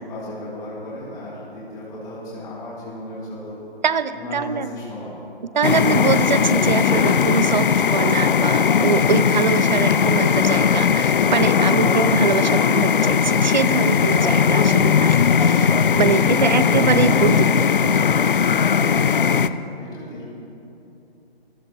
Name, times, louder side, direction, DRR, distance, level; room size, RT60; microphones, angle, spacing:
voice 1, 0.0-3.6 4.1-5.2 11.7-12.2 14.2-14.5 16.2-17.6 18.4-20.3, left 1 dB, 10° left, -9 dB, 2.8 m, -35 dB
voice 2, 3.8-4.7 5.5-17.5, right 6 dB, 45° right, 14 dB, 0.6 m, -23 dB
sound 1, 5.6-19.5, left 6 dB, 55° left, 0.5 m, -18 dB
24.5 x 14.0 x 3.0 m, 2.8 s
figure-of-eight pair, 150°, 32 cm